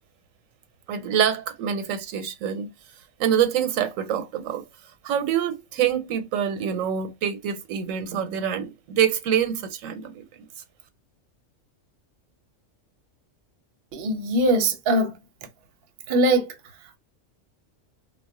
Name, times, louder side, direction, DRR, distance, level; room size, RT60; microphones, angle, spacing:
voice 1, 0.9-2.7 3.2-4.6 5.0-10.2, right 9 dB, 90° right, 1.0 m, -25 dB
voice 2, 13.9-15.2 16.1-16.5, right 1 dB, 55° right, 0.7 m, -21 dB
2.2 x 2.1 x 3.6 m
omnidirectional pair, 1.3 m